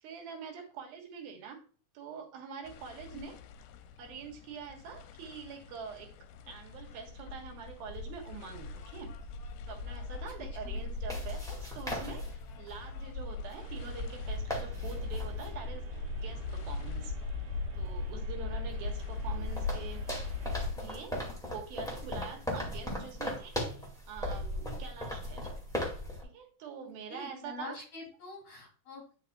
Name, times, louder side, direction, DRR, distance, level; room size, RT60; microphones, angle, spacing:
voice 1, 0.0-1.6 1.9-3.4 4.0-6.1 6.5-9.1 9.7-17.1 17.8-20.0 20.7-25.5 26.2-27.8, right 6 dB, 90° right, 1 dB, 3.2 m, -45 dB
sound 1, 2.7-20.7, left 4 dB, 85° left, 2.4 m, -40 dB
sound 2, 7.9-8.0 10.8-12.7 13.5-13.6 13.9-14.0 14.2-15.5 18.0-18.1 18.7-26.2, left 1 dB, ahead, 1.0 m, -38 dB
voice 2, 10.4-10.8 11.1-11.2 26.8-29.1, left 3 dB, 45° left, -1 dB, 4.1 m, -46 dB
sound 3, 13.6-20.7, right 1 dB, 60° right, 2.8 m, -44 dB
9.8 x 5.8 x 2.3 m, 0.41 s
omnidirectional pair, 4.1 m